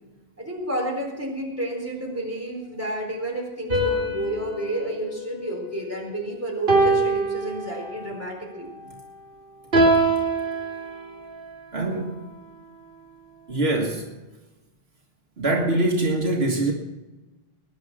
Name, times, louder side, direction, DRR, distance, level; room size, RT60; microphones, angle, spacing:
voice 1, 0.4-8.7, right 1 dB, 15° right, 0 dB, 4.2 m, -30 dB
sound 1, 3.7-6.1 6.7-8.2 9.7-11.4, right 2 dB, 60° right, 3.0 m, -24 dB
voice 2, 11.7-12.2 13.5-14.1 15.4-16.7, right 2 dB, 80° right, 0 dB, 1.9 m, -23 dB
20.0 x 10.0 x 6.1 m, 1.1 s
omnidirectional pair, 1.0 m